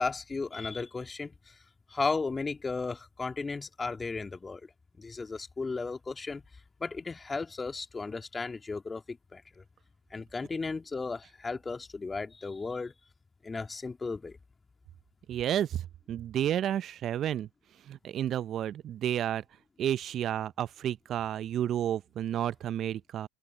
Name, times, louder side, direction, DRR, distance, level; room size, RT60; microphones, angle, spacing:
voice 1, 0.0-1.5 1.9-4.6 4.9-6.4 6.8-9.6 10.1-12.9 13.4-14.4, left 4 dB, 20° left, 2.5 m, -35 dB
voice 2, 15.3-15.8 16.1-17.5 17.9-19.4 19.8-23.3, right 11 dB, 45° right, 0.5 m, -31 dB
hypercardioid pair, 85°, 0 cm